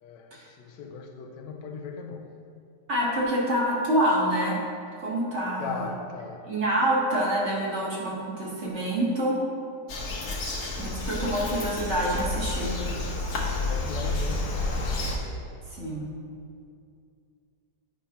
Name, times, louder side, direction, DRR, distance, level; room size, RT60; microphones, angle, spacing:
voice 1, 0.0-2.4 5.6-6.5 13.5-14.7, left 5 dB, 85° left, 1.3 m, -38 dB
voice 2, 2.9-4.6 5.0-5.9 6.5-9.4 10.8-12.8 15.7-16.1, right 1 dB, 45° right, 1.4 m, -26 dB
Bird vocalization bird call bird song, 9.9-15.2, left 2 dB, 65° left, 1.4 m, -30 dB
9.2 x 5.3 x 2.9 m
omnidirectional pair, 1.9 m